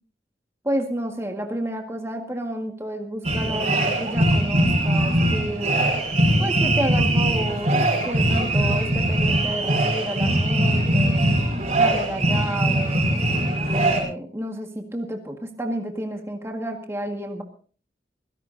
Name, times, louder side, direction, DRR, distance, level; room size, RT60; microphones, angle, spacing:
voice 1, 0.6-5.8 6.4-11.3 11.8-13.2 13.7-17.4, right 1 dB, 15° right, 3 dB, 1.8 m, -30 dB
sound 1, 3.2-14.0, right 1 dB, 40° right, 5.5 m, -21 dB
23.5 x 17.0 x 2.7 m, 0.41 s
head